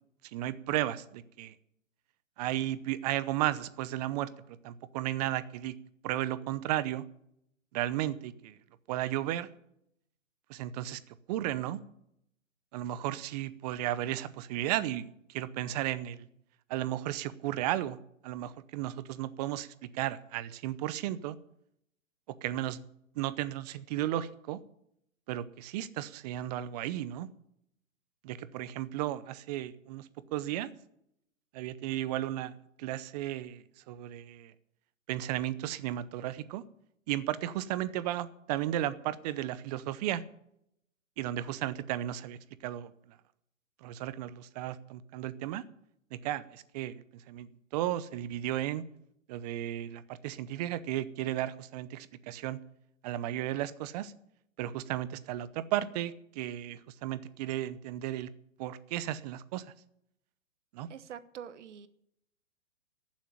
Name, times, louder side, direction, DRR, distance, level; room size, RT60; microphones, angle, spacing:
voice 1, 0.3-1.5 2.4-5.7 6.0-7.0 7.7-8.6 8.9-9.5 10.5-11.0 11.3-11.8 12.7-16.3 16.7-18.0 18.2-21.4 22.4-22.8 23.2-24.6 25.3-27.3 28.2-30.7 31.5-34.5 35.1-36.6 37.1-40.2 41.2-43.2 43.8-45.6 46.1-48.8 49.3-52.6 53.0-54.1 54.6-58.3 58.6-59.7 60.7-60.9, right 13 dB, 30° right, 16 dB, 0.7 m, -34 dB
voice 2, 60.9-61.9, right 8 dB, 60° right, 14 dB, 1.2 m, -45 dB
14.0 x 7.4 x 8.9 m, 0.75 s
hypercardioid pair, 130°, 39 cm